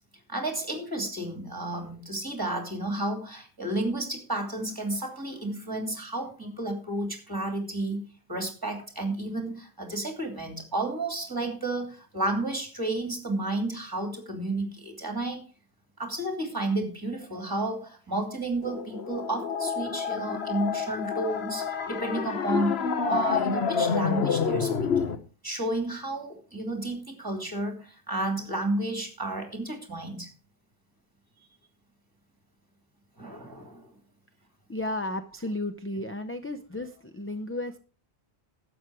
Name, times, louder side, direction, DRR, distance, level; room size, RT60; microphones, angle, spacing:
voice 1, 0.3-15.4 16.0-24.9 25.4-30.3 33.2-33.9, right 2 dB, 20° right, 4 dB, 2.9 m, -32 dB
sound 1, 18.6-25.2, left 5 dB, 70° left, 1.3 m, -28 dB
voice 2, 34.7-37.8, left 1 dB, 15° left, 8 dB, 0.5 m, -33 dB
12.0 x 8.1 x 4.8 m, 0.36 s
omnidirectional pair, 1.1 m